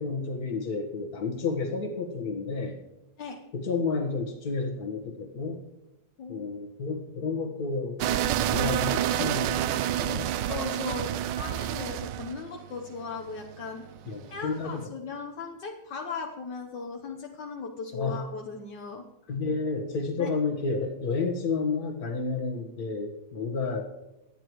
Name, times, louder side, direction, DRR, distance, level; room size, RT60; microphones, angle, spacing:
voice 1, 0.0-2.8 3.5-5.6 6.3-8.0 8.5-10.3 14.1-14.9 17.9-18.2 19.3-23.8, left 4 dB, 55° left, 3 dB, 1.9 m, -31 dB
sound 1, 8.0-14.7, right 11 dB, 80° right, 1.2 m, -28 dB
voice 2, 10.5-11.1 11.4-13.8 14.3-19.0 20.2-20.3, left 4 dB, 75° left, 2 dB, 1.7 m, -37 dB
22.0 x 10.0 x 3.1 m, 0.94 s
omnidirectional pair, 1.9 m